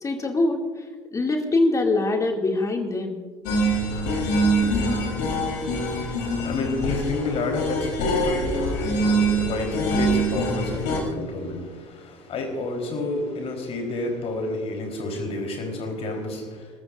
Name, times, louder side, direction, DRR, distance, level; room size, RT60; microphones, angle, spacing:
voice 1, 0.0-0.6 1.1-3.2, left 2 dB, 20° left, 3 dB, 2.5 m, -23 dB
sound 1, 3.5-11.0, right 1 dB, 60° left, 3.9 m, -24 dB
voice 2, 5.1-16.7, left 2 dB, 40° left, 3 dB, 4.1 m, -30 dB
29.5 x 14.0 x 2.6 m, 1.5 s
figure-of-eight pair, 65°, 15 cm